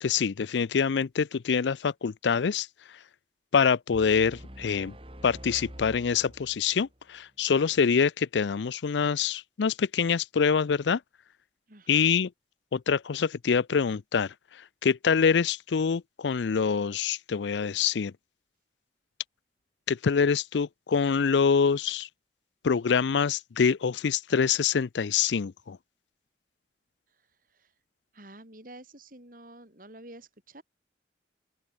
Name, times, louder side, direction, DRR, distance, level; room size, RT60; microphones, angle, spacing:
voice 1, 0.0-2.7 3.5-4.9 5.2-11.0 11.9-12.3 12.7-14.3 14.8-18.1 19.9-22.1 22.6-25.8, left 6 dB, 90° left, 0.5 m, -25 dB
sound 1, 3.9-7.0, equal, 30° right, 6.2 m, -46 dB
voice 2, 11.7-12.1 27.5-27.7 28.1-30.6, right 1 dB, 50° right, 6.2 m, -49 dB
open air
head